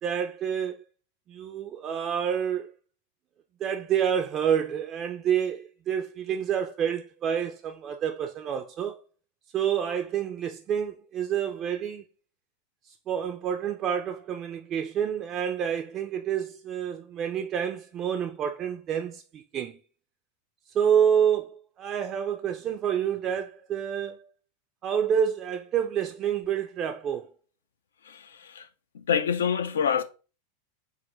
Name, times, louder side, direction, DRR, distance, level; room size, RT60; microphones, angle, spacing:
voice 1, 0.0-0.8 1.3-2.7 3.6-9.0 9.5-12.0 13.1-19.8 20.7-24.2 24.8-27.3, right 8 dB, 35° right, 0.3 m, -28 dB
voice 2, 28.1-28.7 29.1-30.0, left 7 dB, 80° left, 0.3 m, -26 dB
3.7 x 2.3 x 3.1 m
hypercardioid pair, 100°, 0 cm